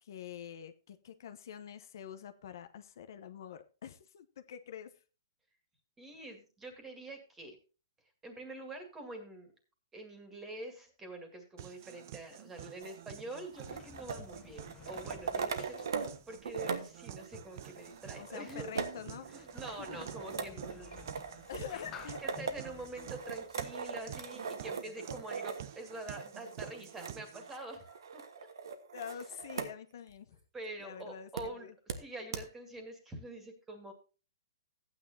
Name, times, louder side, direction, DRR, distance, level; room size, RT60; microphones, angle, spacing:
voice 1, 0.0-4.9 18.2-20.0 21.5-22.2 28.9-30.4 30.8-31.7, left 9 dB, 60° left, 9 dB, 0.9 m, -46 dB
voice 2, 6.0-7.6 8.2-9.5 9.9-18.7 19.2-21.5 21.7-21.8 22.2-28.2 30.5-31.7 32.0-33.9, right 2 dB, 10° right, 6 dB, 2.1 m, -46 dB
sound 1, 11.6-27.6, right 11 dB, 50° right, 0.7 m, -50 dB
sound 2, 12.8-16.2 16.4-29.7 30.1-30.2 31.4-31.5 31.9-32.0 32.3-32.4, right 5 dB, 85° right, 1.4 m, -41 dB
Sliding door, 13.0-24.4, left 9 dB, 20° left, 0.7 m, -56 dB
14.5 x 9.2 x 2.7 m, 0.33 s
hypercardioid pair, 155°, 2 cm